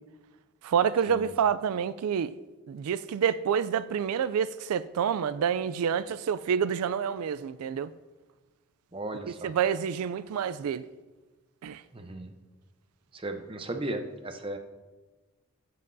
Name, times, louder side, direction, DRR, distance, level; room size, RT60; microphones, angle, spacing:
voice 1, 0.6-2.4 2.7-7.9 9.3-10.9 11.6-11.8, right 7 dB, 90° right, 0.3 m, -28 dB
voice 2, 8.9-9.5 11.9-12.3 13.2-14.6, right 2 dB, 25° right, 0.7 m, -35 dB
15.0 x 7.5 x 2.7 m
head